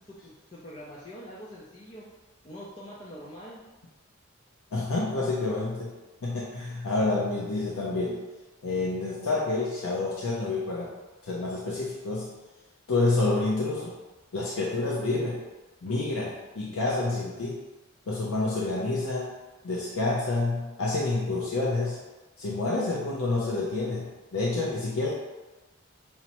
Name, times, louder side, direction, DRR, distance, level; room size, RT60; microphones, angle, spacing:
voice 1, 0.0-2.1 2.4-3.7, equal, 30° left, -7 dB, 0.4 m, -44 dB
voice 2, 4.7-5.9 6.2-8.3 8.6-10.9 11.2-12.3 12.9-14.0 14.3-15.4 15.8-17.6 18.1-19.3 19.6-22.0 22.4-25.2, left 2 dB, 90° left, -4 dB, 0.5 m, -28 dB
5.6 x 2.0 x 2.9 m, 1.1 s
head